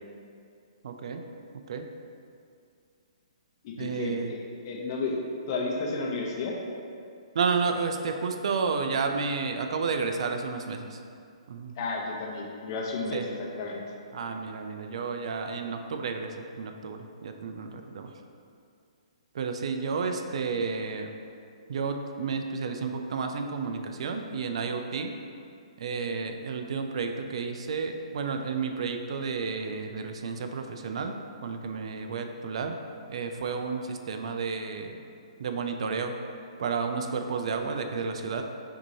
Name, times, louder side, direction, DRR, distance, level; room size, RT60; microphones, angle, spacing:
voice 1, 0.8-1.2 1.7-1.9 3.8-4.4 7.3-11.0 11.5-11.7 13.1-13.2 14.1-18.1 19.3-21.1 21.7-25.1 25.8-31.2 31.4-32.8 33.1-35.0 35.4-36.1 36.6-38.4, right 5 dB, 60° right, 5 dB, 0.4 m, -31 dB
voice 2, 3.6-4.4 4.6-5.2 5.5-6.5 11.8-13.8, left 3 dB, 45° left, -1 dB, 0.7 m, -32 dB
5.9 x 2.7 x 2.7 m, 2.4 s
hypercardioid pair, 135°, 3 cm